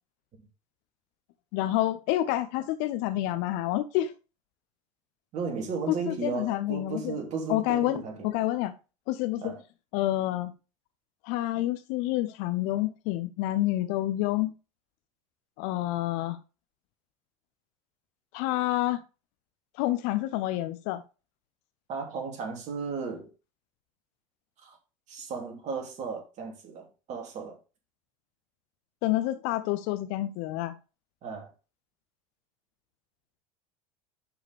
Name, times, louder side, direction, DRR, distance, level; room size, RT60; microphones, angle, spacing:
voice 1, 1.5-4.1 5.9-7.2 7.5-8.7 9.1-9.5 9.9-10.5 11.2-14.5 15.6-16.4 18.3-19.0 19.8-21.0 29.0-30.7, left 15 dB, 50° left, 0.8 m, -28 dB
voice 2, 5.3-8.4 9.4-9.6 21.9-23.3 24.6-24.8 25.1-27.6 31.2-31.5, right 5 dB, 40° right, 2.8 m, -35 dB
11.5 x 4.8 x 3.5 m
figure-of-eight pair, 70°, 18 cm